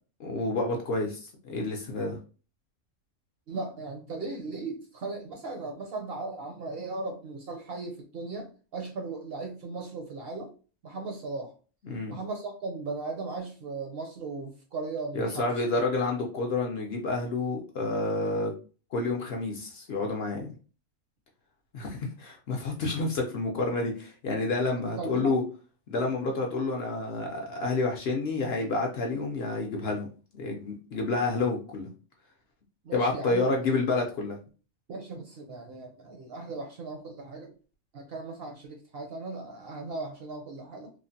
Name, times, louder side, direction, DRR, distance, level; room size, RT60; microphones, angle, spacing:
voice 1, 0.2-2.2 11.8-12.2 15.1-18.5 18.9-20.5 21.7-25.4 25.9-30.1 30.3-31.9 32.9-34.4, left 3 dB, 60° left, 1 dB, 0.7 m, -29 dB
voice 2, 3.5-10.5 10.8-11.5 12.1-15.5 25.0-25.3 32.8-33.8 34.9-37.5 37.9-40.9, right 3 dB, 60° right, 2 dB, 0.7 m, -37 dB
3.1 x 2.1 x 2.6 m, 0.36 s
omnidirectional pair, 1.4 m